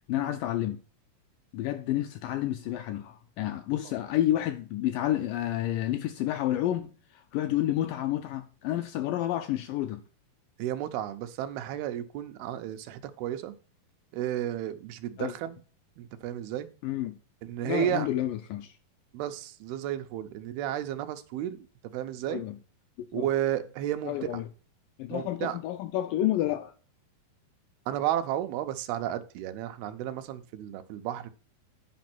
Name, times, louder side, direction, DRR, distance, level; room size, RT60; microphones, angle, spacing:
voice 1, 0.1-0.8 1.5-10.0 15.2-15.3 16.8-17.2 17.6-18.7 22.3-22.6 23.0-23.3 24.0-24.5 25.0-26.7, left 13 dB, 80° left, 1.9 m, -30 dB
voice 2, 10.6-13.5 14.1-15.6 16.0-16.7 17.5-18.1 19.1-21.7 21.9-22.4 23.1-24.2 25.1-25.6 27.9-31.3, right 11 dB, 85° right, 2.7 m, -32 dB
9.2 x 5.3 x 6.0 m
omnidirectional pair, 4.3 m